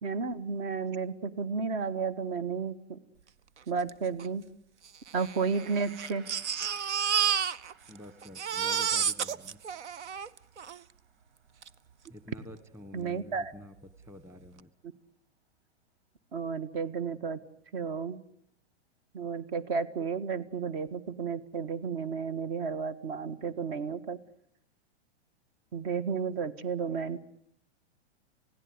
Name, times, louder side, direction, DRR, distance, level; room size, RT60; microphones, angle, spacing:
voice 1, 0.0-3.0 3.7-4.4 5.1-6.2 12.9-13.5 16.3-17.4 17.7-18.2 19.1-24.2 25.7-27.2, right 5 dB, 55° right, 15 dB, 1.8 m, -32 dB
Crying sobbing, 3.9-4.0 4.2-4.3 5.1-8.0 8.2-10.8 11.6-11.7 12.1-12.2, right 8 dB, 85° right, 1.0 m, -31 dB
Gong, 5.5-13.8 14.2-14.4, right 6 dB, 30° right, 5.1 m, -59 dB
voice 2, 7.9-9.6 12.1-14.7, left 1 dB, 10° right, 12 dB, 1.5 m, -49 dB
28.5 x 17.0 x 9.7 m, 0.71 s
hypercardioid pair, 130°, 34 cm